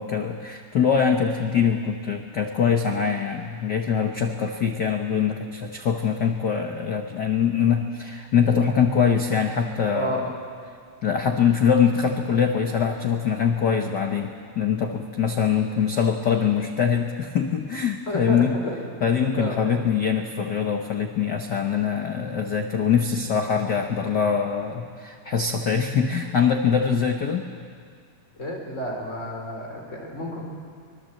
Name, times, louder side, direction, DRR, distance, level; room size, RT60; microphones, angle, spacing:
voice 1, 0.0-10.3 11.0-18.5 19.0-27.4, left 7 dB, 75° left, 4 dB, 0.9 m, -23 dB
voice 2, 9.9-10.3 18.1-19.0 19.4-19.8 28.4-30.4, left 1 dB, 20° left, 0 dB, 4.5 m, -30 dB
25.0 x 21.0 x 7.7 m, 2.1 s
omnidirectional pair, 3.6 m